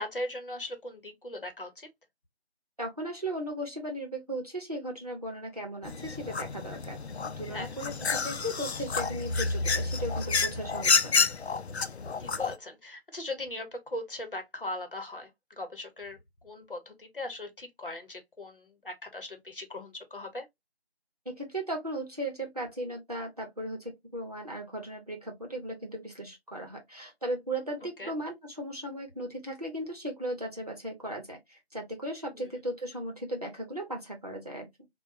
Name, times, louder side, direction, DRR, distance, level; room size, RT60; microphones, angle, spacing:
voice 1, 0.0-1.9 7.5-7.7 11.9-20.5 27.8-28.1 32.3-32.5, left 1 dB, 55° left, 1.1 m, -39 dB
voice 2, 2.8-7.0 7.4-11.2 21.3-34.9, right 1 dB, 35° right, 0.9 m, -37 dB
sound 1, 5.8-12.6, left 4 dB, 75° left, 0.5 m, -29 dB
4.2 x 2.3 x 2.5 m
figure-of-eight pair, 170°, 32 cm